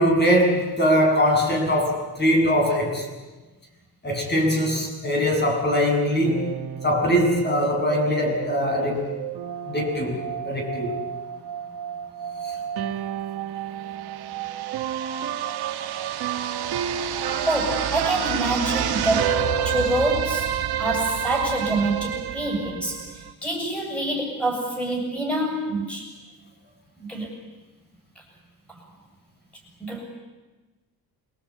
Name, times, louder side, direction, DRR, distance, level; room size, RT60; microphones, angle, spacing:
voice 1, 0.0-3.1 4.0-6.5 6.8-9.1 9.7-11.0, equal, 25° left, 1 dB, 6.9 m, -22 dB
sound 1, 6.2-23.3, right 9 dB, 75° right, 1.7 m, -29 dB
voice 2, 17.4-26.1 27.0-27.3 28.7-28.8 29.8-30.0, right 1 dB, 5° left, -1 dB, 7.1 m, -26 dB
27.5 x 23.5 x 8.6 m, 1.2 s
cardioid pair, 145°, 39 cm